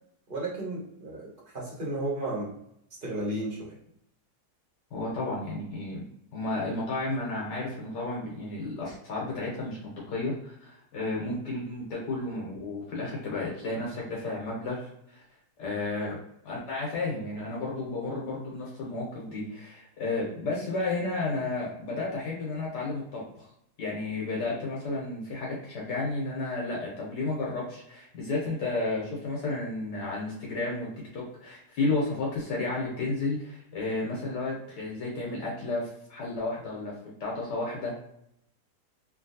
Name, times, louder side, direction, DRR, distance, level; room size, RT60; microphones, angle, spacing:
voice 1, 0.3-2.5 3.0-3.7, right 1 dB, 35° right, -5 dB, 1.2 m, -33 dB
voice 2, 4.9-6.0 6.3-9.8 10.1-15.2 15.6-16.2 16.4-23.5 23.8-36.9 37.2-37.9, left 2 dB, 75° left, -4 dB, 1.6 m, -32 dB
3.4 x 2.6 x 2.7 m, 0.75 s
omnidirectional pair, 1.8 m